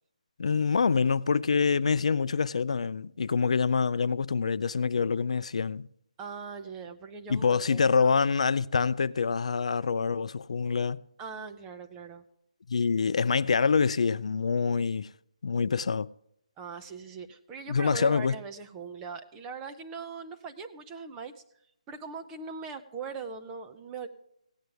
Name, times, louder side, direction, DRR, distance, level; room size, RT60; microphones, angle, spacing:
voice 1, 0.4-5.9 7.3-11.0 12.7-15.1 15.4-16.1 17.7-18.4, left 5 dB, 60° left, 0.4 m, -26 dB
voice 2, 6.2-8.1 11.2-12.2 16.6-21.3 21.9-24.1, right 5 dB, 10° right, 0.5 m, -40 dB
16.5 x 9.4 x 3.4 m
hypercardioid pair, 170°, 4 cm